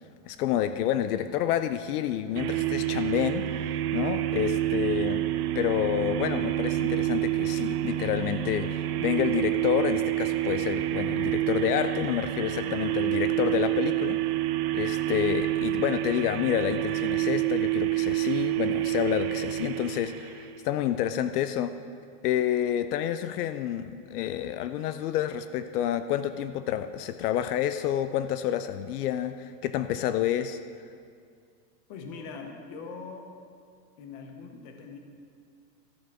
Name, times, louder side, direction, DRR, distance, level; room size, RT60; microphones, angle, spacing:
voice 1, 0.3-5.3 5.5-14.2 14.7-21.7 22.2-30.6, left 11 dB, 70° left, 11 dB, 0.6 m, -29 dB
sound 1, 2.4-20.6, right 15 dB, 70° right, 0.7 m, -28 dB
voice 2, 12.6-13.1 31.9-33.3 34.0-35.0, left 4 dB, 30° left, 4 dB, 0.8 m, -42 dB
14.0 x 6.5 x 4.7 m, 2.2 s
supercardioid pair, 175°, 48 cm